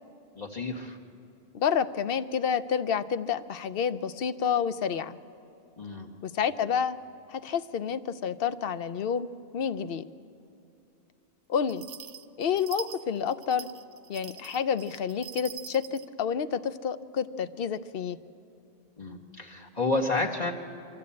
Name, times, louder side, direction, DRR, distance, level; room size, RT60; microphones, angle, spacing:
voice 1, 0.3-1.0 5.8-6.1 19.0-20.5, left 3 dB, 35° left, -1 dB, 1.7 m, -30 dB
voice 2, 1.5-5.2 6.2-7.0 7.3-9.3 9.5-10.0 11.5-11.8 12.4-13.7 14.1-18.2, left 7 dB, 60° left, 13 dB, 0.8 m, -29 dB
sound 1, 11.7-16.1, right 9 dB, 80° right, 1.0 m, -44 dB
24.5 x 13.5 x 8.5 m, 2.8 s
omnidirectional pair, 1.2 m